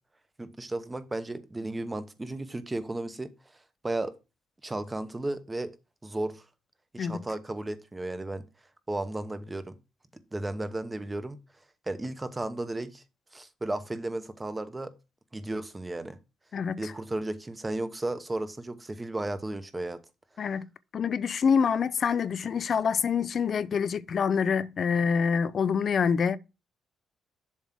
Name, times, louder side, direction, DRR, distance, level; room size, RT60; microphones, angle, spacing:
voice 1, 0.4-3.3 3.8-4.1 4.6-5.7 6.0-6.4 6.9-8.4 8.9-9.7 10.3-11.4 11.9-13.0 13.3-14.9 15.3-16.2 16.8-20.0, right 2 dB, 20° right, 0.9 m, -34 dB
voice 2, 16.5-16.9 20.4-20.7 20.9-26.4, left 6 dB, 50° left, 0.4 m, -26 dB
7.3 x 3.4 x 5.9 m
cardioid pair, 90°, 0 cm